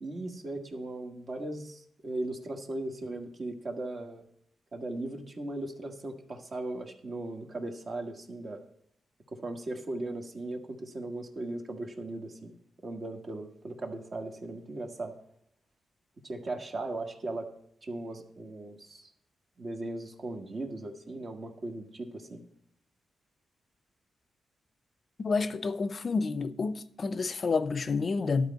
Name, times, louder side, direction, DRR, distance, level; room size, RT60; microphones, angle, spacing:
voice 1, 0.0-4.2 4.7-8.6 9.3-12.5 12.8-15.1 16.2-17.5 17.8-19.1 19.6-22.4, right 2 dB, 45° right, 1.4 m, -38 dB
voice 2, 25.2-28.5, left 4 dB, 45° left, 0.6 m, -29 dB
11.5 x 4.2 x 8.0 m
cardioid pair, 90°, 0 cm